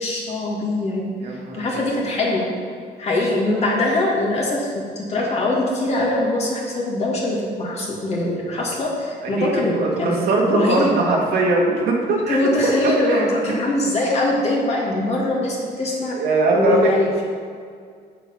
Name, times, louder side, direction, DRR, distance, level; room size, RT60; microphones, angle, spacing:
voice 1, 0.0-2.5 3.0-10.2 10.5-11.0 12.1-16.2 16.6-17.2, left 2 dB, 40° left, -3 dB, 2.3 m, -22 dB
voice 2, 1.2-1.9 9.2-13.3 16.1-16.9, right 2 dB, 70° right, -1 dB, 1.8 m, -21 dB
7.1 x 6.9 x 5.5 m, 2.1 s
cardioid pair, 110°, 17 cm